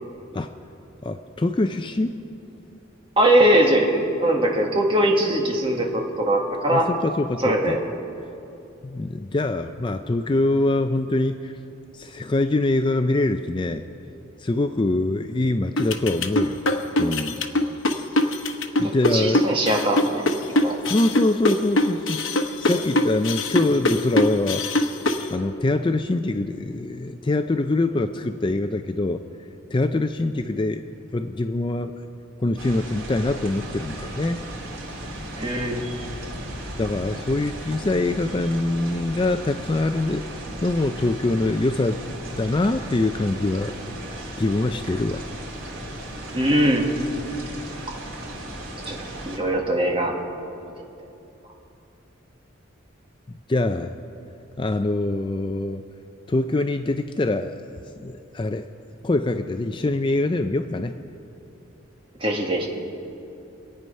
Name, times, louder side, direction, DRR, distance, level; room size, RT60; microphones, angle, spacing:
voice 1, 1.0-2.1 6.7-7.8 8.8-11.5 11.9-13.8 14.4-16.6 17.0-17.5 18.1-18.3 18.8-19.4 20.8-24.6 25.3-29.2 29.7-30.8 31.1-32.0 32.4-34.4 36.8-40.3 40.6-42.0 42.3-44.0 44.4-45.3 53.5-53.9 54.6-55.8 56.3-57.6 58.0-58.7 59.0-61.0, left 2 dB, 25° left, 8 dB, 0.4 m, -24 dB
voice 2, 3.2-6.9 7.4-7.8 18.8-20.2 20.6-20.8 35.3-35.8 46.3-46.9 48.9-49.0 49.2-50.1 50.6-50.7 62.2-62.7, right 1 dB, 25° right, 0 dB, 1.8 m, -21 dB
sound 1, 15.8-25.3, left 1 dB, 80° left, 1.1 m, -22 dB
sound 2, 32.6-49.4, right 1 dB, 85° right, 2.9 m, -36 dB
26.5 x 9.2 x 5.5 m, 2.8 s
head